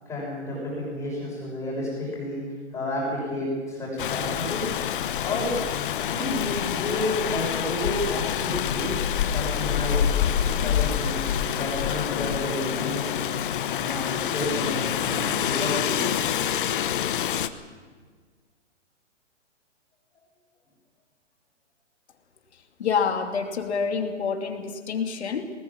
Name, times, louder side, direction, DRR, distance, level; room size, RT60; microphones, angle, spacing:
voice 1, 0.1-2.4 2.7-4.6 5.2-5.5 6.0-8.9 9.3-11.2 11.6-13.3 13.7-16.0, left 1 dB, 10° left, -5 dB, 6.5 m, -31 dB
Rain, 4.0-17.5, left 9 dB, 45° left, 1.0 m, -27 dB
voice 2, 22.8-25.5, left 6 dB, 65° left, 4 dB, 2.9 m, -27 dB
19.5 x 19.5 x 7.4 m, 1.5 s
hypercardioid pair, 155°, 36 cm